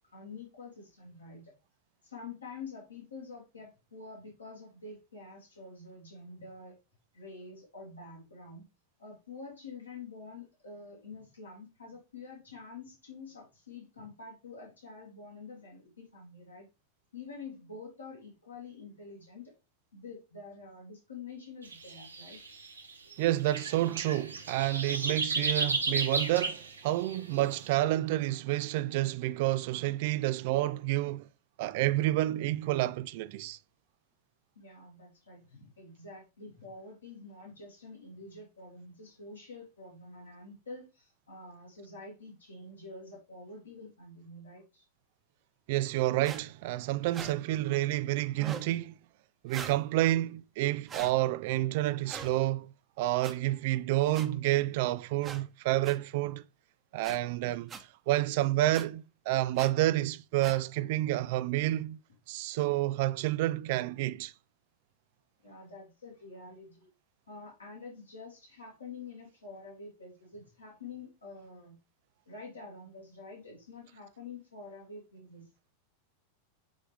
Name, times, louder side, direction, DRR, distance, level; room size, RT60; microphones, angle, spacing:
voice 1, 0.1-1.5 2.0-6.8 7.1-8.7 9.0-16.7 17.1-19.5 19.9-22.6 34.5-44.9 65.4-66.9 67.3-71.8 72.3-75.5, left 3 dB, 75° left, 2.9 m, -47 dB
shrike nightingale sunrise, 21.6-27.7, right 3 dB, 75° right, 1.0 m, -33 dB
voice 2, 23.2-31.3 31.6-33.6 45.7-48.9 49.4-52.7 53.0-56.4 56.9-57.7 58.1-62.0 62.3-64.3, right 16 dB, 50° right, 0.4 m, -29 dB
sound 1, 46.2-46.4 47.1-47.3 48.4-48.7 49.5-49.8 50.9-51.1 52.1-52.3 53.2-53.3 54.1-54.3 55.2-55.4 55.8-56.0 57.0-57.2 57.7-57.8 58.7-58.8 59.6-59.7 60.4-60.6, right 6 dB, 25° right, 1.0 m, -41 dB
8.6 x 3.7 x 3.3 m
figure-of-eight pair, 90°, 0 cm